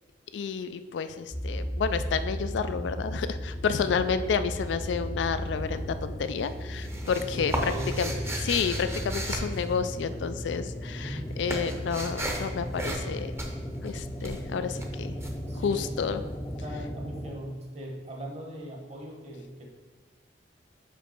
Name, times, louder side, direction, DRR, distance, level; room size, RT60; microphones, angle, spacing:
voice 1, 0.3-7.5 8.0-8.1 8.4-13.3 13.8-15.1 15.6-16.2, left 6 dB, 75° left, 11 dB, 0.3 m, -30 dB
sound 1, 1.3-17.3, equal, 20° left, 0.6 m, -35 dB
sound 2, 5.6-6.1 6.4-10.4 10.7-16.3, right 1 dB, 15° right, 0.7 m, -36 dB
voice 2, 7.1-8.4 11.0-11.4 15.5-15.9 16.6-19.6, equal, 35° right, 0 dB, 1.2 m, -39 dB
5.4 x 5.1 x 4.4 m, 1.4 s
head